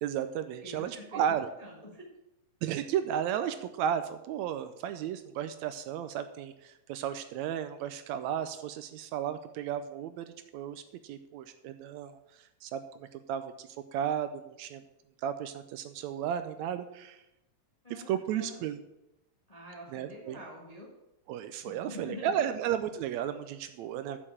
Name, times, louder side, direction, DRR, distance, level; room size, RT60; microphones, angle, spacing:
voice 1, 0.0-1.5 2.6-14.8 15.2-17.2 17.9-18.8 19.9-20.4 21.3-24.2, right 9 dB, 80° right, 10 dB, 1.8 m, -34 dB
voice 2, 0.6-2.0 17.8-18.6 19.5-20.9 21.6-22.3, left 1 dB, 20° left, -2 dB, 0.9 m, -46 dB
7.1 x 6.7 x 7.3 m, 0.88 s
omnidirectional pair, 3.4 m